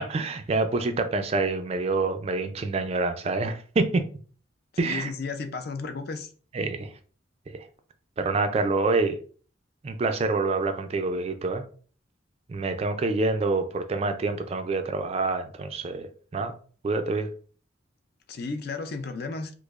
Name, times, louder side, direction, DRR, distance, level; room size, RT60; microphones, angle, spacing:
voice 1, 0.0-4.0 4.8-5.1 6.5-6.9 7.5-7.7 8.2-9.2 9.8-11.6 12.5-16.5 16.8-17.3, right 3 dB, 30° right, 0.3 m, -27 dB
voice 2, 4.8-6.3 18.3-19.5, left 4 dB, 50° left, 0.4 m, -33 dB
4.8 x 2.0 x 2.4 m
head